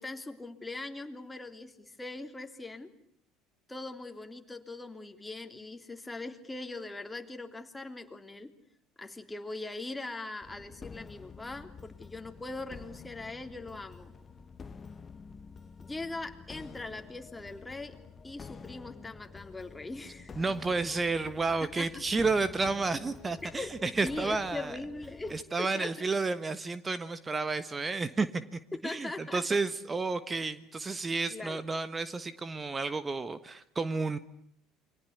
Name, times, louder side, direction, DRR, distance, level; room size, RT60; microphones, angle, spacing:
voice 1, 0.0-2.9 3.7-8.5 9.0-14.1 15.8-18.0 18.2-20.4 21.6-22.0 23.4-23.7 24.0-26.1 28.7-29.4 31.3-31.6, left 2 dB, 10° left, 6 dB, 3.4 m, -41 dB
sound 1, 10.4-25.4, left 5 dB, 30° left, 1.7 m, -49 dB
voice 2, 20.3-24.8 25.3-34.2, right 3 dB, 20° right, 15 dB, 1.4 m, -31 dB
29.0 x 24.5 x 8.3 m, 0.66 s
figure-of-eight pair, 65°, 0 cm